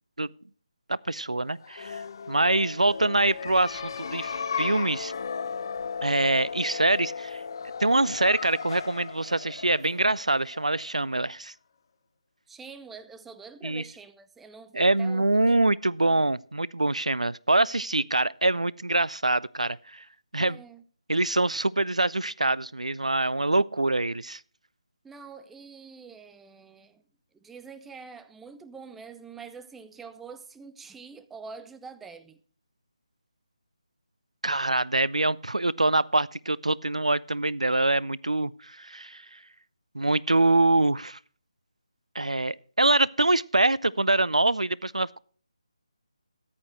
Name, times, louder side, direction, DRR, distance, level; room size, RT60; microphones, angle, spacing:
voice 1, 0.9-2.0 2.3-5.1 6.0-7.4 7.8-11.5 13.6-13.8 14.7-20.0 20.3-20.6 21.1-24.4 34.4-39.4 39.9-41.2 42.1-45.2, right 2 dB, 80° right, 0.4 m, -25 dB
sound 1, 1.6-11.1, left 5 dB, 40° left, 0.8 m, -36 dB
voice 2, 12.5-15.2 20.4-20.8 25.0-27.0 27.4-32.4, right 5 dB, 5° right, 0.4 m, -45 dB
14.0 x 10.0 x 3.1 m
figure-of-eight pair, 150°, 4 cm